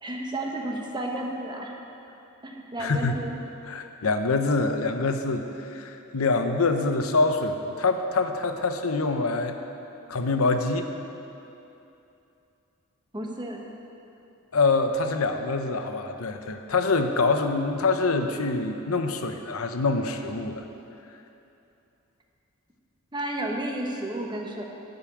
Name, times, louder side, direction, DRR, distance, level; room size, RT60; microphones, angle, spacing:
voice 1, 0.0-1.7 2.4-3.3 13.1-13.6 23.1-24.6, right 1 dB, 20° right, 0 dB, 1.1 m, -32 dB
voice 2, 2.8-3.1 3.7-9.6 10.1-10.9 14.5-20.6, left 3 dB, 85° left, 6 dB, 0.8 m, -25 dB
11.5 x 5.5 x 8.4 m, 2.8 s
head